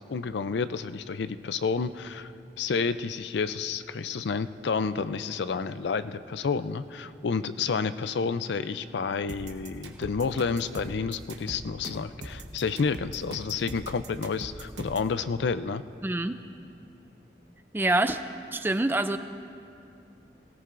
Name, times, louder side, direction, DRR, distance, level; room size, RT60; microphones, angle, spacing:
voice 1, 0.1-2.3 2.6-15.8, left 5 dB, 80° left, 12 dB, 0.4 m, -30 dB
sound 1, 9.3-15.1, right 2 dB, 85° right, 1.1 m, -41 dB
voice 2, 16.0-16.4 17.7-18.2 18.5-19.2, right 2 dB, 10° right, 10 dB, 0.3 m, -25 dB
22.5 x 17.0 x 2.5 m, 2.7 s
head